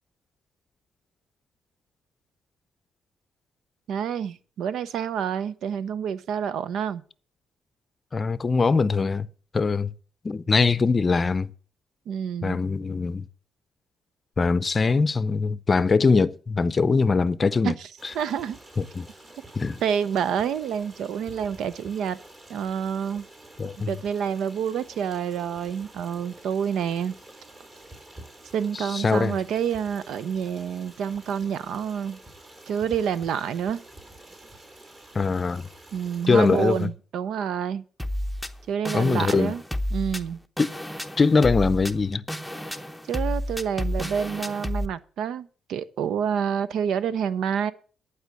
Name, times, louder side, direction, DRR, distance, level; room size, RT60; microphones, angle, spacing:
voice 1, 3.9-7.0 12.1-12.6 17.6-17.9 18.1-18.6 19.8-22.2 22.5-23.3 23.9-27.1 28.5-32.2 32.7-33.8 35.9-37.8 38.7-39.6 39.9-40.4 43.1-47.7, right 8 dB, 75° right, 0.7 m, -28 dB
voice 2, 8.1-9.3 9.5-9.9 10.2-11.5 12.4-13.2 14.4-17.7 18.8-19.1 19.6-19.8 23.6-23.9 28.9-29.3 35.1-35.7 36.3-36.9 38.9-39.5 40.6-40.7 41.2-42.2, left 4 dB, 35° left, 0.6 m, -22 dB
Stream, 18.0-36.9, right 1 dB, 30° right, 3.6 m, -48 dB
sound 1, 38.0-44.9, equal, ahead, 0.9 m, -31 dB
11.0 x 4.9 x 8.2 m
cardioid pair, 90°, 0 cm